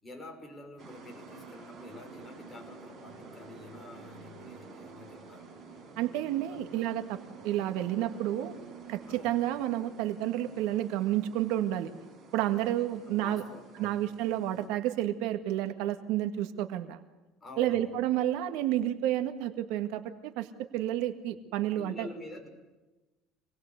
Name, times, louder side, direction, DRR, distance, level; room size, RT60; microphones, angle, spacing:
voice 1, 0.0-5.5 6.5-6.6 9.1-9.3 12.5-13.9 17.4-17.9 21.8-22.5, left 1 dB, 10° left, 2 dB, 5.8 m, -48 dB
sound 1, 0.8-14.7, right 4 dB, 30° right, 7.1 m, -50 dB
voice 2, 6.0-7.2 7.4-8.5 8.9-11.9 12.3-13.4 13.8-17.0 17.6-22.1, right 13 dB, 75° right, 8 dB, 1.9 m, -30 dB
26.5 x 20.0 x 8.2 m, 1.1 s
cardioid pair, 145°, 0 cm